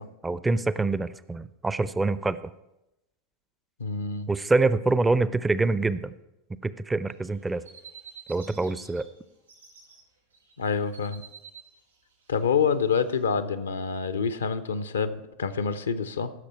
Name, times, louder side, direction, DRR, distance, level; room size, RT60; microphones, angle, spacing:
voice 1, 0.2-2.4 4.3-6.1 6.6-7.6 8.3-9.1, right 3 dB, 10° right, 16 dB, 0.5 m, -25 dB
voice 2, 3.8-4.3 10.6-11.2 12.3-16.3, left 6 dB, 75° left, 12 dB, 0.6 m, -27 dB
sound 1, 7.1-9.0 9.3-10.0 10.3-13.2, right 7 dB, 80° right, 4.3 m, -49 dB
15.5 x 6.6 x 4.6 m, 0.92 s
figure-of-eight pair, 85°, 0 cm